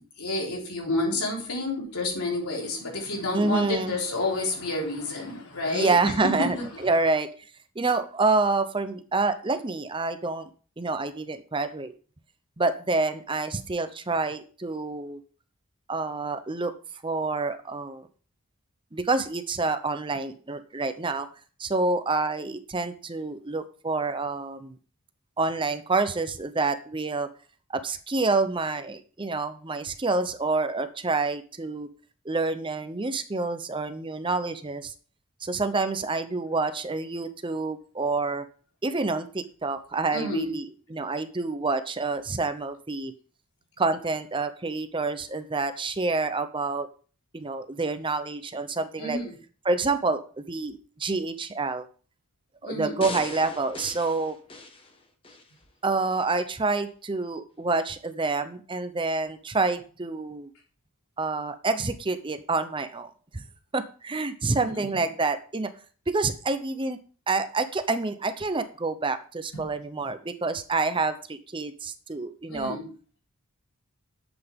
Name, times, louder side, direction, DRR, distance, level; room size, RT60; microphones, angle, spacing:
voice 1, 0.2-6.1 6.4-6.6 40.1-40.5 49.0-49.3 52.6-53.0 64.7-64.9 69.5-69.6 72.5-72.9, left 2 dB, 85° left, -1 dB, 3.9 m, -30 dB
voice 2, 3.3-3.9 5.7-7.3 7.8-10.5 10.8-11.9 12.6-15.2 15.9-16.7 17.0-18.1 18.9-21.3 21.6-24.8 25.4-27.3 27.7-31.9 32.2-34.9 35.4-38.4 38.8-43.1 43.8-46.9 47.3-49.2 49.6-51.9 52.6-54.4 55.8-60.5 61.2-63.4 63.7-65.7 66.1-67.0 67.3-72.8, right 3 dB, 20° right, 10 dB, 0.7 m, -28 dB
sound 1, 53.0-55.5 56.0-56.1, left 3 dB, 25° left, 1.3 m, -40 dB
11.5 x 8.1 x 3.6 m, 0.39 s
head